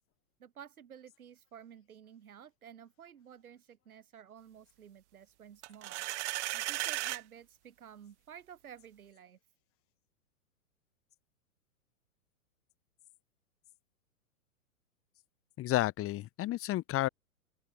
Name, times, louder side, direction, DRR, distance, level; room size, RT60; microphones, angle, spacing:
voice 1, 0.4-6.0 6.3-9.4, right 8 dB, 75° right, 7.3 m, -53 dB
sound 1, 5.6-7.2, right 18 dB, 50° right, 1.4 m, -35 dB
voice 2, 15.6-17.1, left 15 dB, 30° left, 3.0 m, -31 dB
open air
hypercardioid pair, 110°, 44 cm